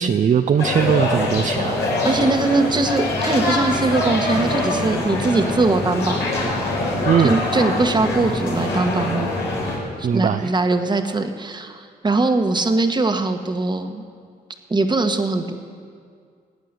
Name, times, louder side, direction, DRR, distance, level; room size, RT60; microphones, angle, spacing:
voice 1, 0.0-1.8 7.1-7.4 10.0-10.5, right 7 dB, 45° right, 7 dB, 0.6 m, -19 dB
sound 1, 0.6-9.8, left 2 dB, 85° left, 4.1 m, -23 dB
voice 2, 2.0-6.2 7.2-9.3 10.1-14.0 14.7-15.5, right 3 dB, 25° right, 7 dB, 1.3 m, -21 dB
17.5 x 9.1 x 6.7 m, 2.1 s
cardioid pair, 75°, 18 cm